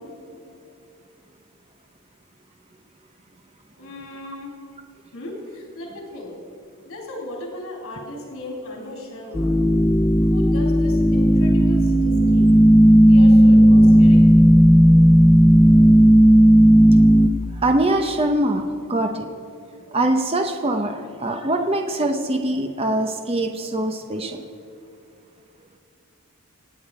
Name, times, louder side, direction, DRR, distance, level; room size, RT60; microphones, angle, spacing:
voice 1, 3.8-4.6 5.1-6.3 6.9-9.5 10.2-12.5 13.0-14.2, left 1 dB, 90° left, -2 dB, 3.8 m, -36 dB
sound 1, 9.3-17.3, equal, 15° left, 0.6 m, -13 dB
voice 2, 17.5-19.3 19.9-24.4, right 1 dB, 25° right, 5 dB, 0.8 m, -23 dB
26.0 x 9.3 x 4.9 m, 2.5 s
head